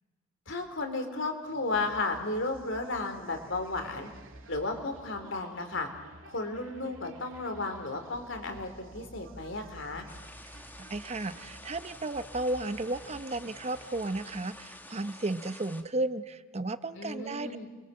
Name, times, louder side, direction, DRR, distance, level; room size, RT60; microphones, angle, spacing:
voice 1, 0.5-4.1 4.5-5.9 6.2-10.1 16.9-17.7, left 2 dB, 60° left, 5 dB, 3.6 m, -34 dB
sound 1, 1.4-15.1, right 2 dB, 70° right, 2.6 m, -52 dB
sound 2, 10.1-15.8, left 2 dB, 10° left, 1.5 m, -49 dB
voice 2, 10.9-17.5, right 2 dB, 30° right, 12 dB, 0.7 m, -33 dB
29.5 x 23.0 x 7.7 m, 1.4 s
head